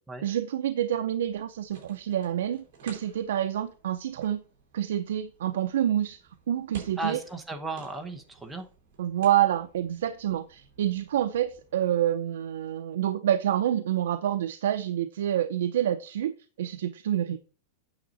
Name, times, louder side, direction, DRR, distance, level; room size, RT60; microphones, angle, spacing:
voice 1, 0.2-4.4 4.7-6.2 6.5-7.2 9.0-17.4, right 11 dB, 75° right, 9 dB, 0.6 m, -27 dB
sound 1, 1.2-12.1, right 5 dB, 40° right, 4.1 m, -53 dB
voice 2, 7.0-8.7 17.3-17.4, right 3 dB, 5° right, 3 dB, 0.8 m, -35 dB
8.9 x 6.5 x 4.1 m, 0.38 s
supercardioid pair, 180°, 0 cm